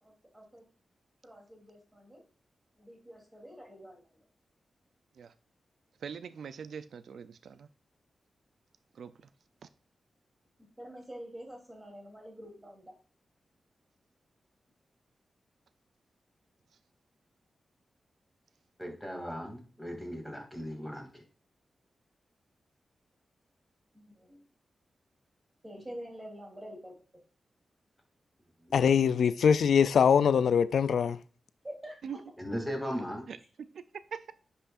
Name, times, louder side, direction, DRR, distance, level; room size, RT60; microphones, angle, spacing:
voice 1, 0.0-0.6 1.2-2.2 2.8-4.0 10.8-13.0 23.9-24.4 25.6-26.9 31.6-32.2, equal, 15° right, 3.1 m, -47 dB
voice 2, 6.0-7.7 8.9-9.1 32.0-32.2 33.3-33.4 34.1-34.3, right 7 dB, 85° right, 0.4 m, -42 dB
voice 3, 18.8-21.2 28.7-28.8 32.4-33.3, equal, ahead, 2.6 m, -37 dB
voice 4, 28.7-31.2, left 7 dB, 90° left, 0.3 m, -23 dB
9.8 x 5.5 x 2.5 m
wide cardioid pair, 120°, 0 cm